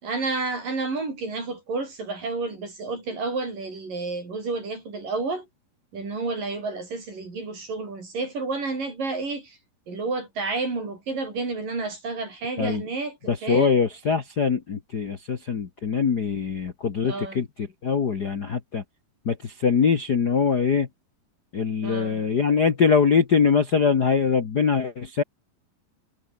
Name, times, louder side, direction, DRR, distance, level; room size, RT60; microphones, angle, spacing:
voice 1, 0.0-5.5 5.9-9.6 9.9-13.7 17.0-17.4 21.8-22.2, right 3 dB, 70° right, 9.3 m, -30 dB
voice 2, 13.3-18.8 19.2-20.9 21.5-25.2, left 6 dB, 45° left, 1.3 m, -23 dB
omnidirectional pair, 4.0 m